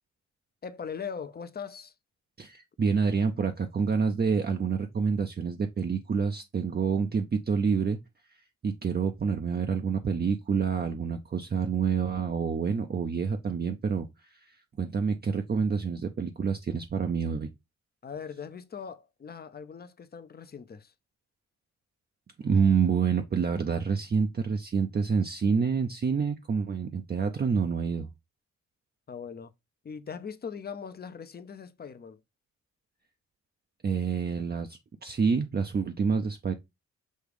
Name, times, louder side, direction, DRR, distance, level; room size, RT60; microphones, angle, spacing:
voice 1, 0.6-1.9 18.0-20.9 29.1-29.5 29.8-32.2, left 6 dB, 30° left, 0.5 m, -40 dB
voice 2, 2.4-8.0 8.6-17.5 22.4-28.1 33.8-36.5, right 6 dB, 35° right, 0.5 m, -28 dB
6.3 x 2.4 x 3.4 m
cardioid pair, 65°, 30 cm